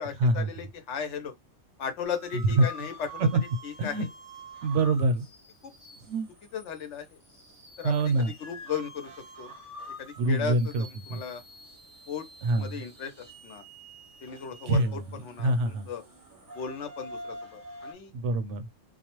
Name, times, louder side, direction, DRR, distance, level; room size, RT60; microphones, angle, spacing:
voice 1, 0.0-1.3 1.8-3.3 3.6-4.1 5.6-5.7 6.5-7.2 7.8-9.5 10.0-11.4 12.1-12.3 12.6-13.6 14.2-16.0 16.5-18.1, left 7 dB, 70° left, 1.0 m, -36 dB
sound 1, 2.0-17.9, equal, 20° right, 0.6 m, -47 dB
voice 2, 4.6-5.3 6.1-6.3 7.8-8.3 10.2-10.8 11.1-11.2 12.4-12.7 14.7-15.9 18.1-18.7, right 2 dB, 70° right, 0.9 m, -25 dB
2.3 x 2.1 x 2.9 m
omnidirectional pair, 1.3 m